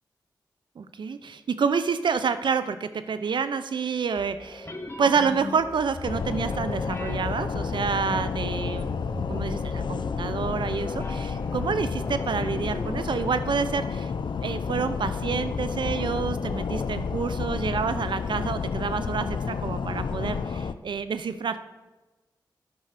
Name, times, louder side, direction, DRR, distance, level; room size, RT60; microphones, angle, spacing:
voice 1, 0.8-4.7 5.0-8.9 9.3-14.1 14.4-21.6, right 6 dB, 80° right, 11 dB, 0.7 m, -28 dB
sound 1, 4.2-13.4, left 2 dB, 30° left, 1.5 m, -38 dB
sound 2, 6.0-20.7, left 5 dB, 70° left, 0.5 m, -30 dB
10.5 x 5.6 x 6.6 m, 1.1 s
cardioid pair, 45°, 8 cm